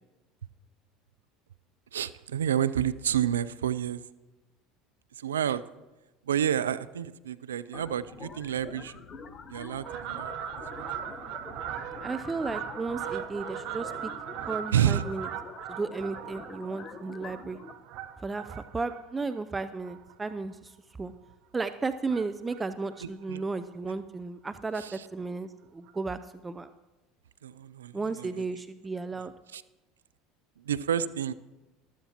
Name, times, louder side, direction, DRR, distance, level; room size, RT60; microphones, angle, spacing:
voice 1, 1.9-4.0 5.2-5.6 6.3-9.0 9.5-10.5 10.8-10.9 14.7-15.0 23.0-23.4 24.8-25.1 27.4-28.4 29.5-29.6 30.6-31.3, right 9 dB, 90° right, 15 dB, 0.3 m, -29 dB
sound 1, 7.7-12.8, left 6 dB, 75° left, 1.7 m, -54 dB
sound 2, 7.7-17.7, left 5 dB, 35° left, 1.0 m, -46 dB
Fowl, 9.8-20.6 21.1-21.3 22.0-22.6 22.9-23.0 23.2-23.3 23.6-23.7 24.1-24.2 25.2-25.3 25.9-26.0, right 10 dB, 65° right, 0.8 m, -39 dB
voice 2, 12.0-14.1 14.5-15.3 15.7-17.6 18.2-20.7 21.0-21.1 21.5-26.7 27.9-29.3, right 3 dB, 20° right, 11 dB, 0.5 m, -34 dB
14.5 x 12.5 x 2.9 m, 1.1 s
hypercardioid pair, 75°, 0 cm